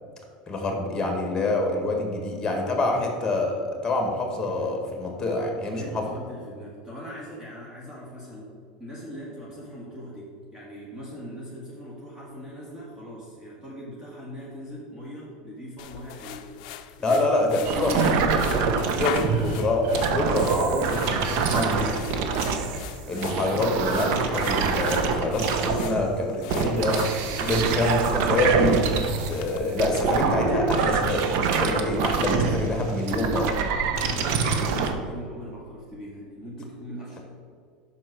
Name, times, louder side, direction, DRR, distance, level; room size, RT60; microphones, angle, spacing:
voice 1, 0.5-6.0 17.0-18.3 18.9-21.9 23.1-27.2 27.5-28.8 29.3-33.5, left 2 dB, 15° left, 2 dB, 1.7 m, -26 dB
voice 2, 5.7-8.5 8.8-17.3 17.6-18.2 27.4-27.7 34.0-37.2, equal, 15° right, -5 dB, 1.6 m, -40 dB
sound 1, 15.8-29.6, left 11 dB, 70° left, 0.4 m, -40 dB
sound 2, 17.6-22.8 23.1-26.1 26.5-29.4 29.8-34.9, right 5 dB, 60° right, 0.8 m, -25 dB
5.6 x 4.5 x 6.2 m, 2.1 s
hypercardioid pair, 100°, 4 cm